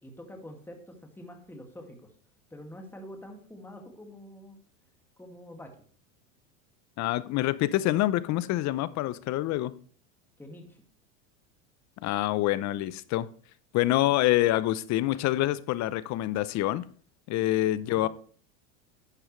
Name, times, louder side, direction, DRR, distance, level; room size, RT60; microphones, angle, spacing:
voice 1, 0.0-2.1 2.5-4.6 5.2-5.8 10.4-10.8 17.8-18.1, left 1 dB, 5° left, 2.2 m, -46 dB
voice 2, 7.0-9.7 12.0-13.3 13.7-16.8 17.3-18.1, left 15 dB, 40° left, 0.7 m, -26 dB
11.5 x 8.7 x 3.2 m
supercardioid pair, 110°, 41 cm